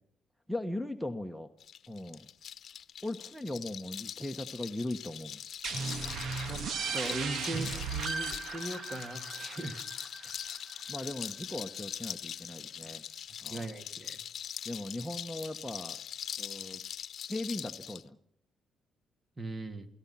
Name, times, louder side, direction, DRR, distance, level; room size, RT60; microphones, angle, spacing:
voice 1, 0.5-1.5 1.9-2.3 3.0-5.4 10.9-13.0 13.4-13.8 14.6-16.0 16.4-16.8 17.3-18.2, left 1 dB, ahead, 4 dB, 1.5 m, -38 dB
sound 1, 1.6-18.0, left 9 dB, 60° left, 1.0 m, -42 dB
sound 2, 5.6-11.1, right 5 dB, 65° right, 2.2 m, -37 dB
voice 2, 6.9-9.8 13.5-14.2 19.4-19.9, right 1 dB, 30° right, 8 dB, 3.1 m, -39 dB
28.5 x 18.5 x 5.9 m, 0.66 s
cardioid pair, 75°, 0 cm